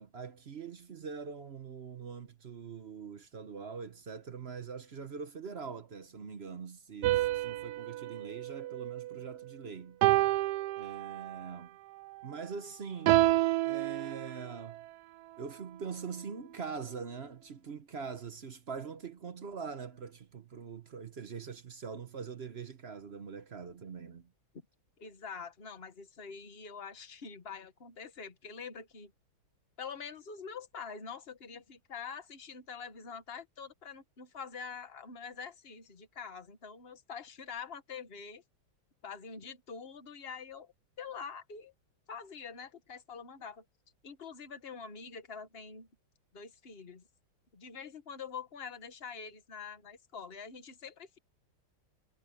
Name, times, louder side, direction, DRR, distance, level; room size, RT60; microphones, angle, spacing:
voice 1, 0.0-10.0 10.8-11.8 12.2-13.2 13.6-14.8 15.4-24.3, right 5 dB, 45° right, 0.9 m, -43 dB
sound 1, 7.0-9.4 10.0-11.5 13.1-14.7, right 16 dB, 75° right, 0.9 m, -29 dB
voice 2, 25.0-29.1 29.8-38.4 39.0-41.7 42.1-43.6 44.0-45.9 46.3-47.0 47.5-51.2, left 6 dB, 30° left, 1.7 m, -45 dB
omnidirectional pair, 2.2 m